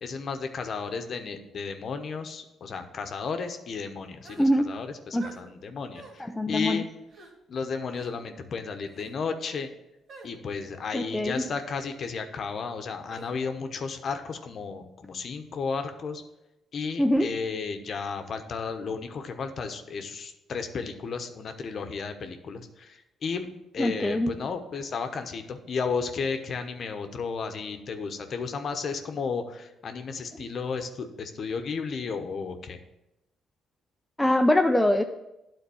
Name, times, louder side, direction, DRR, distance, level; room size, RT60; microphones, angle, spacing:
voice 1, 0.0-6.9 7.5-9.7 10.2-16.2 16.7-23.5 23.7-32.8, left 5 dB, 55° left, 7 dB, 0.9 m, -33 dB
sound 1, 4.2-4.5 5.2-5.4 5.9-6.2 7.1-7.3 7.9-8.1 8.9-9.1 10.1-10.3 11.3-11.5 13.1-13.3, right 3 dB, 60° right, 2.2 m, -47 dB
voice 2, 4.4-4.8 5.1-5.4 6.2-6.8 10.9-11.3 17.0-17.3 23.8-24.3 34.2-35.0, left 1 dB, 10° left, 5 dB, 0.5 m, -23 dB
9.3 x 4.0 x 7.0 m, 0.91 s
cardioid pair, 90°, 0 cm